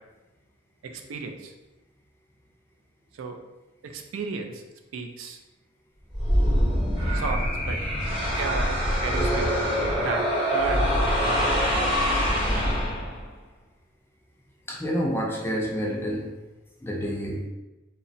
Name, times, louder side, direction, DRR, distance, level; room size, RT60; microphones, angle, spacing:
voice 1, 0.8-1.5 3.1-3.4 3.8-4.6 4.9-5.4 7.1-7.8 8.4-9.5 9.8-11.0 11.2-12.0, right 4 dB, 80° right, 4 dB, 0.3 m, -34 dB
sound 1, 6.1-13.3, equal, 25° right, 0.6 m, -24 dB
voice 2, 14.7-16.3 16.8-17.5, equal, 10° left, -2 dB, 0.3 m, -28 dB
2.8 x 2.0 x 2.6 m, 1.0 s
head